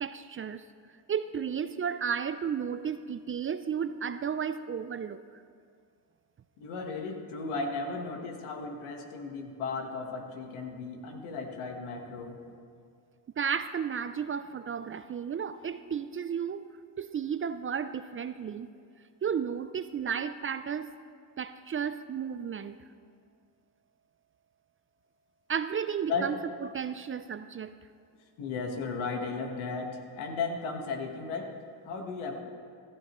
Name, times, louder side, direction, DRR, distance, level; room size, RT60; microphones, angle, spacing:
voice 1, 0.0-0.6 1.1-5.2 13.4-16.7 17.0-18.7 19.2-20.9 21.4-22.8 25.5-26.4 26.6-27.7, right 7 dB, 30° right, 12 dB, 0.3 m, -33 dB
voice 2, 6.6-12.4 26.1-26.3 28.4-31.5 31.8-32.4, left 4 dB, 90° left, 3 dB, 1.4 m, -35 dB
14.5 x 13.5 x 3.1 m, 2.2 s
supercardioid pair, 75°, 46 cm